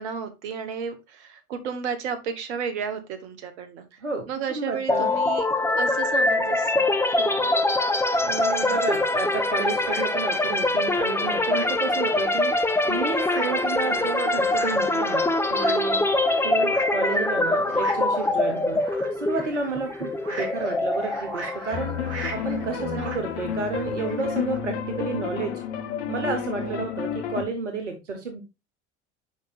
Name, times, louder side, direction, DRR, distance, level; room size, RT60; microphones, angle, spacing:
voice 1, 0.0-4.0 4.3-5.5 5.7-7.5 13.8-14.1 22.8-23.1 26.6-26.9, right 6 dB, 70° right, 9 dB, 1.3 m, -33 dB
voice 2, 4.0-5.1 8.2-12.5 12.8-16.0 16.4-18.8 19.1-22.0 22.3-25.6 26.1-28.4, right 4 dB, 85° right, 5 dB, 1.1 m, -31 dB
sound 1, 4.9-22.6, left 2 dB, 5° left, 0.8 m, -24 dB
sound 2, 8.1-24.6, right 3 dB, 45° right, 2.7 m, -42 dB
sound 3, 21.7-27.4, left 8 dB, 70° left, 1.1 m, -31 dB
7.9 x 5.3 x 2.4 m, 0.26 s
figure-of-eight pair, 70°, 35 cm